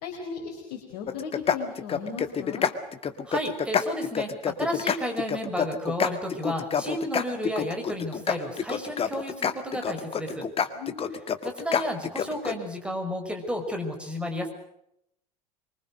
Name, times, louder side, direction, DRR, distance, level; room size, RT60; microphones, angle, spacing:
voice 1, 0.0-2.7 10.7-11.2, left 6 dB, 55° left, 3 dB, 4.5 m, -37 dB
sound 1, 1.1-12.5, left 7 dB, 30° left, 2.0 m, -27 dB
voice 2, 3.2-10.5 11.4-14.5, equal, 5° right, 4 dB, 6.1 m, -32 dB
25.0 x 24.0 x 6.5 m, 0.78 s
figure-of-eight pair, 75°, 20 cm